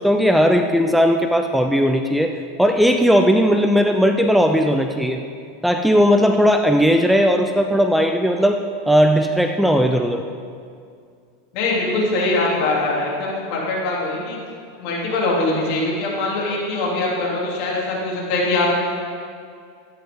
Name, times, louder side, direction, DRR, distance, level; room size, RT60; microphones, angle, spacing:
voice 1, 0.0-5.2 5.6-8.6 8.9-10.2, equal, ahead, 5 dB, 0.5 m, -17 dB
voice 2, 11.5-14.4 14.8-18.7, left 2 dB, 55° left, -4 dB, 3.5 m, -22 dB
13.5 x 10.5 x 3.9 m, 2.3 s
supercardioid pair, 125°, 0 cm